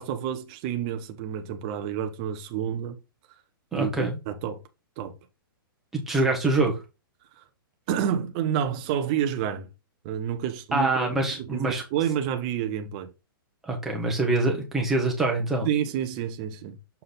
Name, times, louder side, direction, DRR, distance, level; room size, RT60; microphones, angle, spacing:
voice 1, 0.0-3.0 3.7-4.6 5.0-5.1 7.9-9.7 10.0-13.1 15.6-16.8, right 9 dB, 20° right, 0.6 m, -29 dB
voice 2, 3.7-4.2 5.9-6.8 10.7-11.8 13.6-15.7, right 2 dB, ahead, 1.0 m, -25 dB
6.7 x 3.9 x 3.9 m
hypercardioid pair, 180°, 12 cm